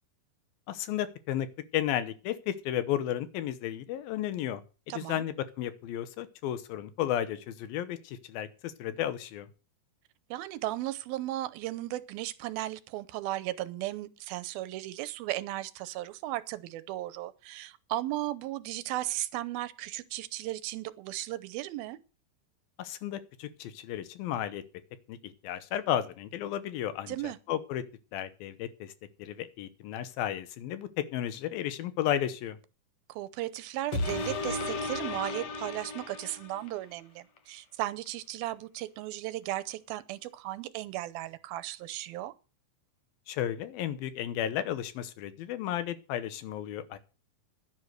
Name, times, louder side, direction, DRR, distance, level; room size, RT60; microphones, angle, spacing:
voice 1, 0.7-1.5 1.7-4.6 4.9-9.5 22.8-24.6 25.1-27.8 28.1-28.9 29.2-32.6 43.3-47.0, left 11 dB, 80° left, 2.7 m, -33 dB
voice 2, 4.9-5.2 10.3-22.0 27.1-27.4 33.1-42.3, right 15 dB, 85° right, 2.6 m, -36 dB
sound 1, 33.9-36.9 37.4-37.5, left 3 dB, 55° left, 2.1 m, -34 dB
11.0 x 9.8 x 6.4 m
omnidirectional pair, 4.3 m